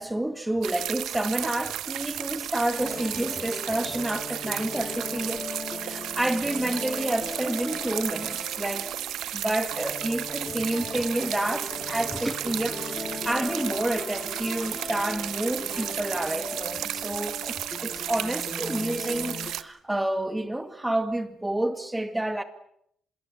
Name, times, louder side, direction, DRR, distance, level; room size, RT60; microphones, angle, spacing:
voice 1, 0.0-5.5 5.7-8.9 9.3-12.8 13.2-22.4, right 1 dB, 10° right, 2.0 m, -29 dB
sound 1, 0.6-19.6, right 12 dB, 80° right, 1.2 m, -34 dB
sound 2, 2.7-19.5, left 4 dB, 25° left, 2.7 m, -39 dB
25.5 x 21.5 x 8.3 m
cardioid pair, 90°, 0 cm